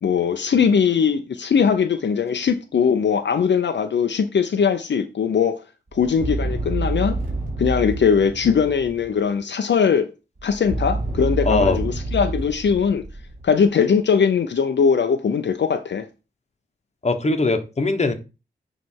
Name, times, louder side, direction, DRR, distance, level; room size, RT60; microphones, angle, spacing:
voice 1, 0.0-5.6 5.9-7.2 7.6-10.1 10.4-13.0 13.4-16.1, left 6 dB, 65° left, 0.6 m, -20 dB
sound 1, 5.9-9.2 10.4-13.7, right 2 dB, 40° right, 4.0 m, -28 dB
voice 2, 11.4-11.8 17.0-18.1, left 3 dB, 35° left, 1.1 m, -20 dB
9.4 x 3.3 x 4.5 m
wide cardioid pair, 100°, 20 cm